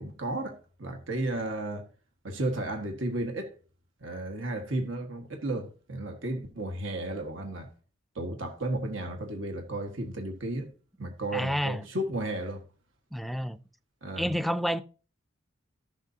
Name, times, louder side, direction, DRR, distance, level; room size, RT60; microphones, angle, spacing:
voice 1, 0.0-1.8 2.2-3.5 4.0-7.7 8.2-10.7 11.0-12.6 14.0-14.3, right 1 dB, 70° right, 1.7 m, -33 dB
voice 2, 11.3-11.9 13.1-13.6 14.2-14.8, equal, ahead, 0.4 m, -29 dB
13.5 x 7.3 x 2.8 m
head